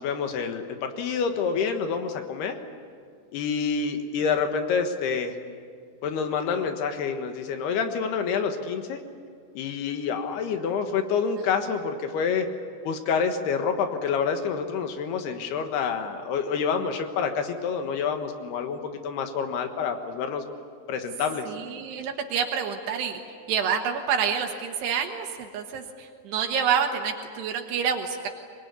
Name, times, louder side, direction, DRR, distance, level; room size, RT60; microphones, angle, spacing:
voice 1, 0.0-2.6 3.3-5.3 6.0-9.0 9.5-12.5 12.8-20.4 20.9-21.5, left 6 dB, 75° left, 6 dB, 3.4 m, -27 dB
voice 2, 21.5-23.2 23.5-28.3, right 7 dB, 80° right, 3 dB, 3.4 m, -28 dB
25.0 x 21.0 x 9.7 m, 2.1 s
omnidirectional pair, 4.8 m